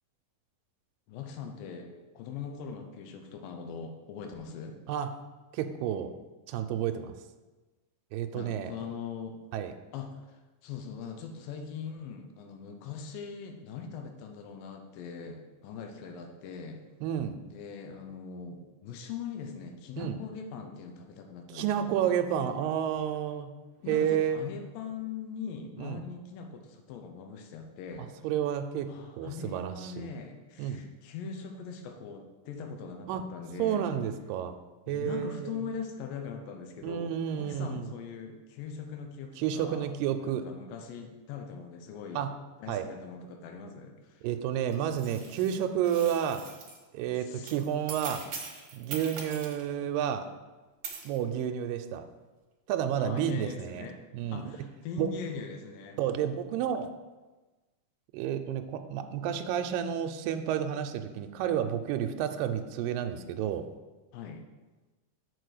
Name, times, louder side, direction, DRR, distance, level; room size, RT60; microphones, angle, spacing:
voice 1, 1.1-4.8 8.3-9.4 9.9-16.8 17.4-22.0 23.8-28.1 28.9-33.9 34.9-39.9 40.2-42.3 42.6-44.3 47.2-47.5 53.0-54.0 54.3-56.0 64.1-64.4, left 6 dB, 85° left, 4 dB, 2.5 m, -41 dB
voice 2, 5.5-6.1 6.5-7.1 8.1-8.7 9.5-9.7 17.0-17.4 20.0-20.2 21.5-23.5 23.9-24.4 25.8-26.0 28.0-30.1 30.6-30.8 33.1-33.2 33.6-34.6 34.9-35.6 36.8-37.9 39.4-40.5 42.1-42.3 42.7-42.9 44.2-46.5 46.9-48.3 48.7-50.3 51.0-52.1 52.7-53.9 54.1-54.5 55.0-55.1 56.0-56.9 58.1-63.7, right 9 dB, 85° right, 7 dB, 2.2 m, -31 dB
sound 1, 44.7-46.8 47.5-49.7 50.8-51.2, right 5 dB, 55° right, 1.8 m, -42 dB
6.6 x 4.5 x 6.5 m, 1.2 s
omnidirectional pair, 3.9 m